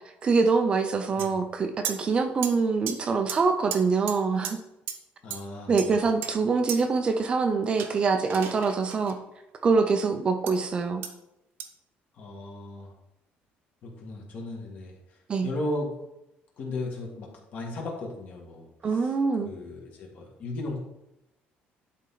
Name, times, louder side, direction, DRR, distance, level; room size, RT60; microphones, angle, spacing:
voice 1, 0.2-4.6 5.7-9.2 9.6-11.0 15.3-15.5 18.8-19.5, right 4 dB, 25° right, 7 dB, 0.5 m, -24 dB
sound 1, 1.2-1.3 1.8-2.0 2.4-2.5 2.9-3.0 3.3-3.4 3.7-3.8 4.1-4.2 4.4-4.5 4.9-5.0 5.3-5.4 5.8-6.3 6.7-6.8 7.8-9.1 10.5-10.6 11.0-11.1 11.6-11.7, right 9 dB, 65° right, 0.9 m, -34 dB
voice 2, 5.2-6.0 12.2-12.9 13.8-15.0 15.4-15.9 16.6-19.1 19.4-20.8, left 2 dB, 45° left, -1 dB, 1.9 m, -36 dB
10.5 x 4.3 x 3.8 m, 0.90 s
cardioid pair, 180°, 4 cm